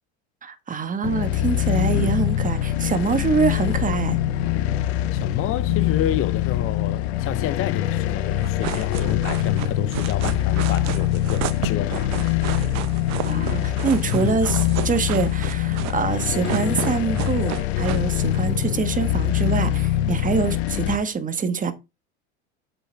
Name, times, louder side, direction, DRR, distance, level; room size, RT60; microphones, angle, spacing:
voice 1, 0.4-4.2 13.2-21.7, right 5 dB, 25° right, 1.6 m, -25 dB
sound 1, 1.0-21.0, left 12 dB, 80° left, 1.1 m, -24 dB
voice 2, 5.1-12.1 14.1-14.4, left 12 dB, 40° left, 0.8 m, -29 dB
sound 2, 8.4-18.4, right 14 dB, 55° right, 1.1 m, -32 dB
8.5 x 6.9 x 3.5 m
supercardioid pair, 100°, 33 cm